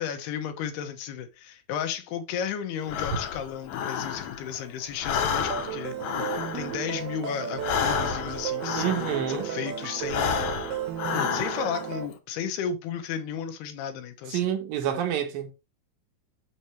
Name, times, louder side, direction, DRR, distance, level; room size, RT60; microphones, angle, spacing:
voice 1, 0.0-6.0 6.3-10.5 11.3-14.5, left 8 dB, 85° left, 3.1 m, -34 dB
Breathing, 2.9-4.6 4.9-9.5 10.0-11.9, left 7 dB, 70° left, 2.3 m, -30 dB
sound 1, 5.3-12.1, right 10 dB, 90° right, 2.9 m, -34 dB
voice 2, 8.8-9.5 14.3-15.5, right 10 dB, 70° right, 2.6 m, -28 dB
7.0 x 6.7 x 3.2 m
omnidirectional pair, 4.4 m